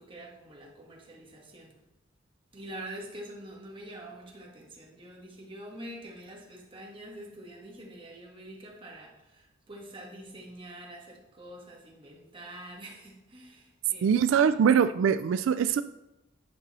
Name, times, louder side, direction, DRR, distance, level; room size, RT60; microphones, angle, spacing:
voice 1, 0.0-1.8 2.5-14.6, right 1 dB, 25° right, 1.6 m, -46 dB
voice 2, 14.0-15.8, right 7 dB, 85° right, 0.3 m, -23 dB
10.0 x 5.4 x 4.1 m
head